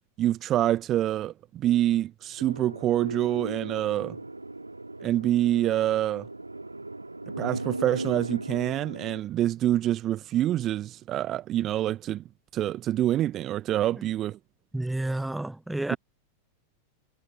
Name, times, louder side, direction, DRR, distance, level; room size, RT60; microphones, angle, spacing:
voice 1, 0.2-4.2 5.0-6.3 7.4-12.2 12.5-14.4 15.9-16.0, right 13 dB, 30° right, 1.2 m, -26 dB
sound 1, 2.4-9.2, right 2 dB, 85° right, 2.3 m, -37 dB
voice 2, 14.7-16.0, right 1 dB, 5° right, 0.7 m, -30 dB
figure-of-eight pair, 90°, 0 cm